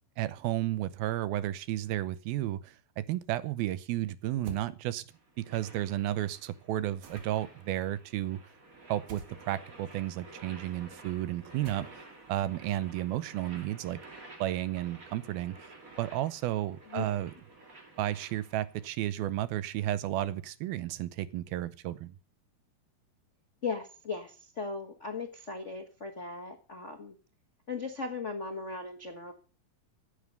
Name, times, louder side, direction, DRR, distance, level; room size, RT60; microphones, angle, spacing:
voice 1, 0.2-5.0 5.4-8.4 8.9-11.9 12.3-14.0 14.4-15.7 16.0-17.3 18.0-22.2, right 14 dB, 90° right, 2.7 m, -32 dB
sound 1, 4.4-4.7 7.0-7.6 9.1-9.4 11.6-12.2, right 4 dB, 60° right, 2.8 m, -45 dB
sound 2, 5.1-18.9, right 2 dB, 30° right, 2.1 m, -52 dB
voice 2, 23.6-27.1 27.7-29.3, left 4 dB, 75° left, 0.6 m, -37 dB
14.5 x 8.7 x 6.7 m
omnidirectional pair, 4.2 m